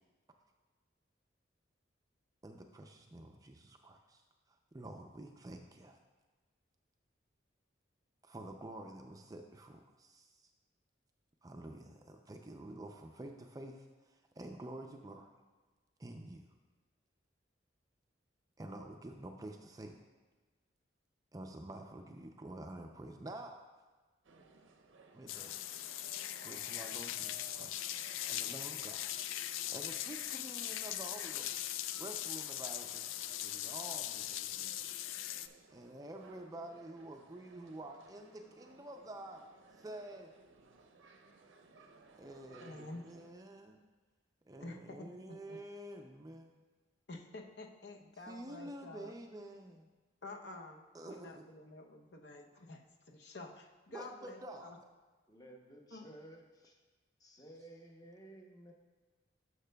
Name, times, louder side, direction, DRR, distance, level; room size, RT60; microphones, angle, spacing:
voice 1, 2.4-4.2 4.5-6.0 8.2-10.5 11.4-15.3 16.0-16.5 18.6-20.0 21.3-23.7 25.1-25.6 26.4-27.9 28.3-29.2 29.7-34.8 35.7-39.4 39.7-40.3 42.2-43.8 44.5-46.5 48.3-49.9 50.9-51.4 53.9-54.7, right 1 dB, 20° right, 4 dB, 0.4 m, -49 dB
sound 1, 24.2-43.3, right 3 dB, 90° right, 0.6 m, -61 dB
sound 2, 25.3-35.5, left 12 dB, 90° left, 0.3 m, -40 dB
voice 2, 42.6-43.0 44.6-45.6 47.1-49.1 50.2-52.8 53.1-54.8 55.9-56.1, left 2 dB, 60° left, 2 dB, 0.7 m, -49 dB
voice 3, 55.3-56.8 57.2-58.7, right 1 dB, 20° left, 2 dB, 0.7 m, -55 dB
11.5 x 6.4 x 2.2 m, 1.3 s
head